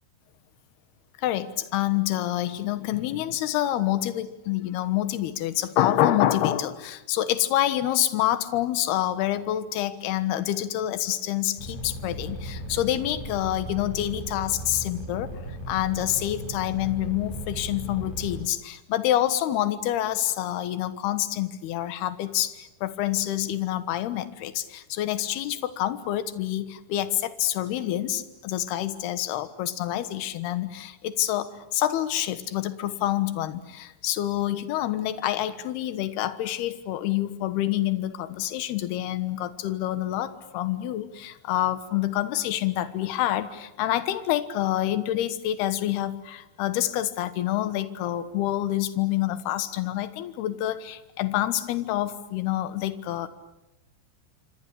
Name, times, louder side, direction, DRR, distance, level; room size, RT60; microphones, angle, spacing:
voice 1, 1.2-15.3 15.7-53.3, left 13 dB, 70° left, 12 dB, 3.0 m, -27 dB
sound 1, 11.6-18.4, equal, 40° left, 8.8 m, -36 dB
26.5 x 26.0 x 8.5 m, 0.89 s
omnidirectional pair, 5.4 m